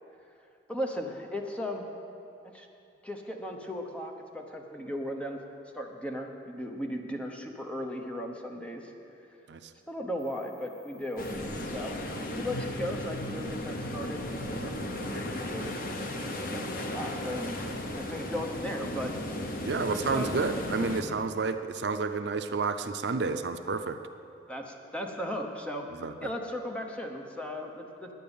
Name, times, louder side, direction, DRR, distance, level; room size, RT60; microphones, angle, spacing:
voice 1, 0.7-1.8 2.4-2.7 3.0-5.4 5.7-8.9 9.9-11.3 11.7-12.0 12.3-15.7 16.0-17.6 17.9-19.1 19.9-20.3 21.1-21.2 24.5-25.9 26.2-28.1, equal, 5° left, 2 dB, 0.9 m, -36 dB
sound 1, 10.2-20.2, left 1 dB, 85° left, 0.6 m, -47 dB
sound 2, 11.2-21.0, left 1 dB, 50° left, 0.8 m, -35 dB
voice 2, 19.6-24.0 26.0-26.3, right 4 dB, 70° right, 8 dB, 0.5 m, -30 dB
10.0 x 9.2 x 7.1 m, 2.6 s
head